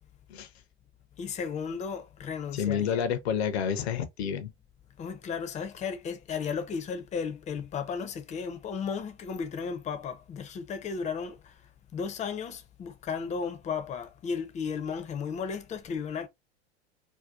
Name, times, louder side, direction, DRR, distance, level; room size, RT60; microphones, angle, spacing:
voice 1, 1.2-3.0 5.0-11.6 11.9-16.3, left 6 dB, 20° left, 0.5 m, -34 dB
voice 2, 2.5-4.5, left 8 dB, 70° left, 0.6 m, -29 dB
2.6 x 2.2 x 2.3 m
hypercardioid pair, 80°, 33 cm